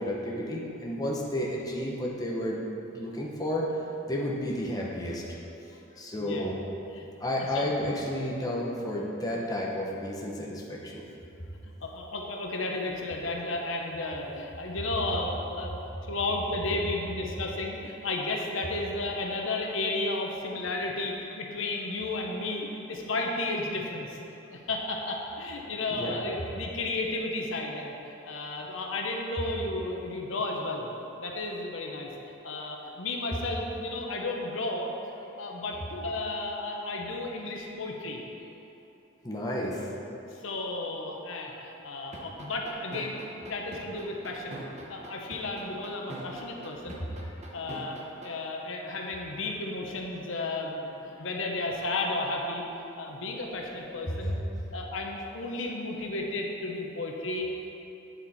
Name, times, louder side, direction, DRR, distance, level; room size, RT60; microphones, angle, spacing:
voice 1, 0.0-2.6 2.9-3.8 4.1-5.2 6.0-6.5 7.2-11.0 25.9-26.2 39.2-39.9 47.4-47.5 54.2-54.3, left 1 dB, 20° left, -3 dB, 0.9 m, -31 dB
voice 2, 6.1-6.5 6.9-7.0 7.5-7.6 11.6-15.8 16.1-24.2 24.5-30.9 31.2-32.1 32.4-34.9 35.4-38.2 40.3-43.2 43.5-44.6 44.9-47.0 47.5-50.9 51.2-54.4 54.7-57.5, left 2 dB, 80° left, 1 dB, 0.9 m, -33 dB
sound 1, 42.1-48.3, right 2 dB, 35° right, 0.9 m, -42 dB
8.7 x 7.2 x 4.2 m, 2.9 s
head